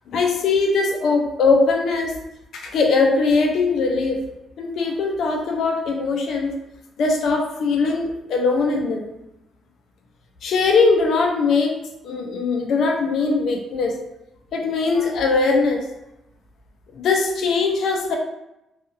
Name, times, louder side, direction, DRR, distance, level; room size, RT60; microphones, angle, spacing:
voice 1, 0.1-2.1 2.5-4.2 4.6-6.5 7.0-9.1 10.4-11.7 12.0-14.0 14.5-15.8 16.9-18.2, left 4 dB, 70° left, 2 dB, 0.5 m, -20 dB
2.6 x 2.4 x 2.8 m, 0.91 s
cardioid pair, 90°, 0 cm